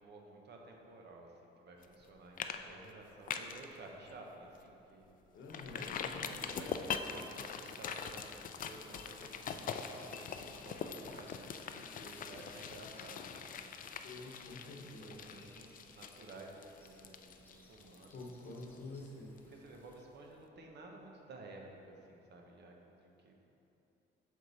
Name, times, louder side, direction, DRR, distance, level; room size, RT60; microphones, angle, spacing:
voice 1, 0.0-5.2 6.2-13.8 14.6-18.5 19.5-23.4, right 2 dB, 60° right, 1 dB, 0.9 m, -54 dB
sound 1, 1.8-2.1 2.4-2.6 2.9-3.7 4.1-4.2 4.6-4.7 5.5-19.1 19.4-19.5, left 6 dB, 45° left, 0.4 m, -43 dB
voice 2, 5.3-6.6 14.0-15.5 18.1-19.4, left 2 dB, 65° left, 0 dB, 1.0 m, -48 dB
sound 2, 5.9-20.0, left 1 dB, 10° left, 0.7 m, -65 dB
6.4 x 4.5 x 4.0 m, 2.9 s
cardioid pair, 90°, 20 cm